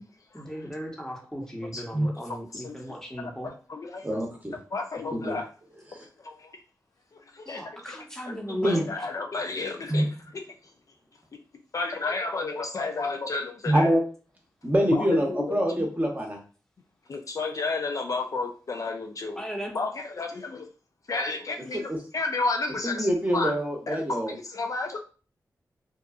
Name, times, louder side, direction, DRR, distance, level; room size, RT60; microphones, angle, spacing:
voice 1, 0.3-3.5 7.5-8.8 19.4-19.7, equal, 10° left, 0 dB, 0.9 m, -36 dB
voice 2, 3.2-4.2 4.7-5.5 6.2-6.3 7.5-7.6 8.3-10.4 11.7-13.9 14.9-15.4 17.1-19.4 19.7-20.7 21.1-21.8 22.1-23.1 23.3-23.5 23.9-25.0, left 3 dB, 50° left, 4 dB, 0.3 m, -31 dB
voice 3, 4.0-4.5 5.1-5.4 5.9-6.1 8.6-8.8 9.9-10.1 13.6-14.0 14.6-16.4 21.7-22.0 22.8-24.3, equal, 25° right, 0 dB, 0.9 m, -25 dB
2.7 x 2.2 x 2.3 m, 0.38 s
cardioid pair, 45°, 7 cm